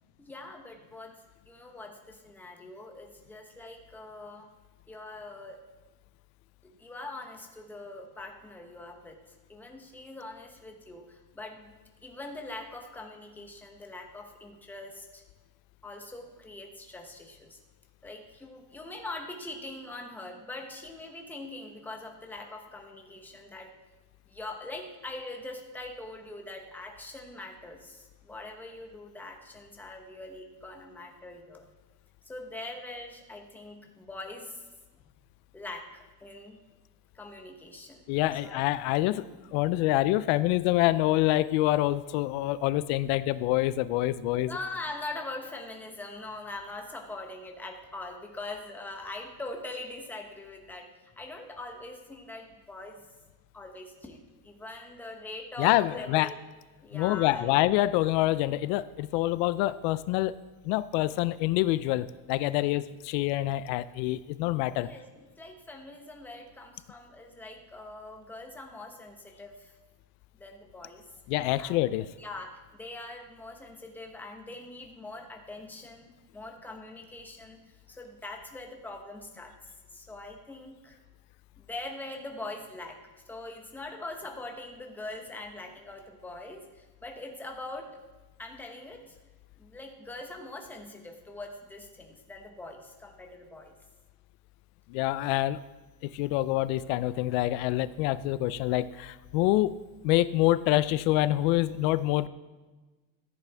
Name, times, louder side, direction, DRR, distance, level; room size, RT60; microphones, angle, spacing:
voice 1, 0.2-4.5 4.9-5.6 6.8-9.2 9.5-11.7 12.0-15.2 15.8-17.6 18.0-23.7 24.3-31.6 32.2-34.6 35.5-36.6 37.1-38.0 38.4-38.6 44.4-53.1 53.5-56.4 56.8-57.6 64.8-69.7 70.4-71.0 71.6-77.6 77.9-79.5 79.9-81.0 81.6-83.0 83.3-88.0 88.4-89.2 89.6-93.7, left 2 dB, 5° left, 2 dB, 0.8 m, -43 dB
voice 2, 38.1-39.3 39.5-44.6 55.6-56.3 56.9-60.3 60.6-64.9 71.3-72.1 94.9-95.6 96.0-99.7 100.0-102.3, left 16 dB, 85° left, 16 dB, 0.5 m, -26 dB
14.0 x 8.4 x 3.4 m, 1.2 s
cardioid pair, 165°, 43 cm